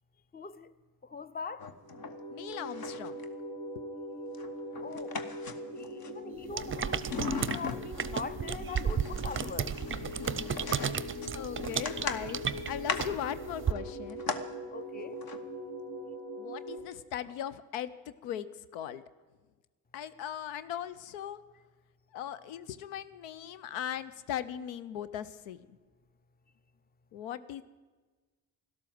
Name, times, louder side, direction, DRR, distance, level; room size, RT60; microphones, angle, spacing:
voice 1, 0.3-0.7 1.0-1.7 4.8-5.2 5.7-9.8 14.7-15.2, left 4 dB, 20° left, 0.7 m, -42 dB
sound 1, 1.6-2.2 2.5-3.3 4.3-6.1 6.5-8.2 8.6-14.4 15.1-15.4 16.9-17.0 17.2-17.3, left 5 dB, 50° left, 1.3 m, -39 dB
sound 2, 1.8-16.8, equal, 70° left, 2.9 m, -42 dB
voice 2, 2.3-3.2 3.8-3.9 9.9-14.2 16.4-18.5 18.7-19.0 19.9-21.4 22.1-25.7 27.1-27.6, left 10 dB, 85° left, 0.6 m, -39 dB
sound 3, 6.5-13.7, right 7 dB, 25° right, 0.6 m, -34 dB
12.5 x 12.0 x 7.7 m
hypercardioid pair, 45°, 47 cm